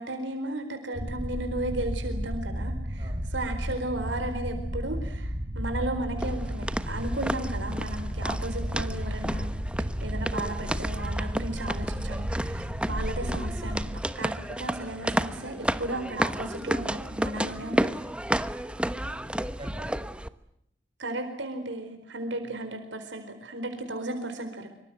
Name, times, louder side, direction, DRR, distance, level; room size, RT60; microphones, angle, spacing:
voice 1, 0.0-9.6 10.0-14.3 14.6-18.0 21.0-24.7, right 1 dB, 70° right, 6 dB, 4.4 m, -35 dB
sound 1, 0.9-13.9, equal, 50° right, 6.7 m, -33 dB
sound 2, 6.2-20.3, right 1 dB, 5° right, 1.0 m, -32 dB
voice 2, 18.9-20.0 22.4-22.5, right 1 dB, 25° right, 3 dB, 7.0 m, -47 dB
26.0 x 25.0 x 7.9 m, 0.76 s
head